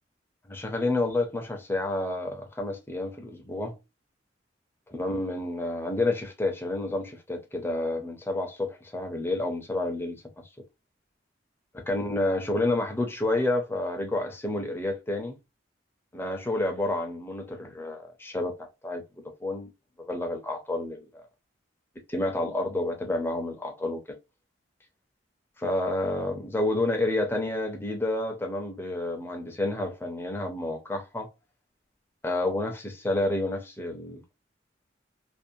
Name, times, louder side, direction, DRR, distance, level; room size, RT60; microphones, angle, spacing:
voice 1, 0.5-3.8 4.9-10.2 11.7-15.3 16.1-18.5 18.8-19.0 19.4-19.7 20.0-21.1 22.1-24.0 25.6-31.3 32.2-34.3, left 2 dB, 10° left, 0.5 m, -29 dB
2.5 x 2.0 x 2.6 m
head